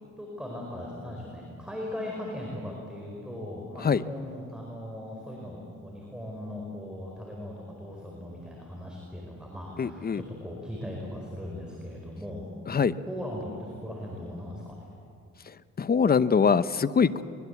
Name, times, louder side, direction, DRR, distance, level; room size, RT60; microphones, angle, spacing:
voice 1, 0.2-12.5 13.0-14.9, left 1 dB, 5° right, -1 dB, 4.9 m, -39 dB
voice 2, 9.8-10.2 12.7-12.9 15.8-17.2, left 6 dB, 30° left, 15 dB, 0.8 m, -23 dB
23.0 x 21.5 x 8.3 m, 2.5 s
cardioid pair, 90°, 30 cm